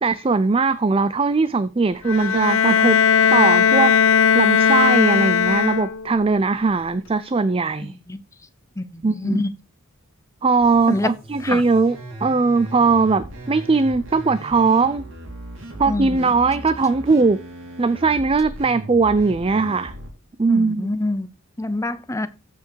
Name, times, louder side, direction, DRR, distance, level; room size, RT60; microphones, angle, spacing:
voice 1, 0.0-3.0 3.3-3.9 4.3-7.9 9.0-9.5 10.4-15.1 15.8-17.4 17.8-19.9 20.4-20.9, right 4 dB, 25° right, 0.4 m, -19 dB
Bowed string instrument, 2.1-6.2, left 7 dB, 70° left, 0.8 m, -17 dB
voice 2, 7.8-8.2 8.8-9.5 10.9-11.1 11.4-11.6 15.9-16.3 20.5-21.3 21.6-22.3, left 2 dB, 15° left, 0.7 m, -26 dB
sound 1, 10.6-20.1, right 1 dB, 60° right, 3.1 m, -37 dB
14.5 x 5.9 x 4.6 m
head